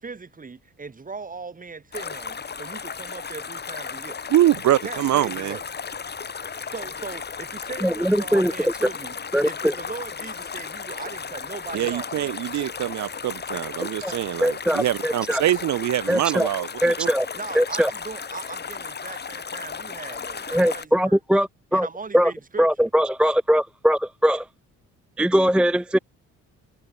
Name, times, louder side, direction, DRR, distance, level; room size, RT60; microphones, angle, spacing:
voice 1, 0.0-4.2 4.8-5.6 6.6-9.2 9.4-12.3 17.3-21.2 21.7-22.9, right 4 dB, 25° right, 3.0 m, -38 dB
sound 1, 1.9-20.8, left 6 dB, 35° left, 1.8 m, -35 dB
voice 2, 4.3-5.6 11.7-16.7 17.0-17.1, right 13 dB, 70° right, 1.0 m, -24 dB
voice 3, 7.8-8.7 9.3-9.8 13.8-15.4 16.1-16.5 16.8-17.3 17.5-17.9 20.5-21.9 22.1-22.3 22.6-24.5 25.2-26.0, equal, 5° right, 0.5 m, -21 dB
cardioid pair, 90°, 30 cm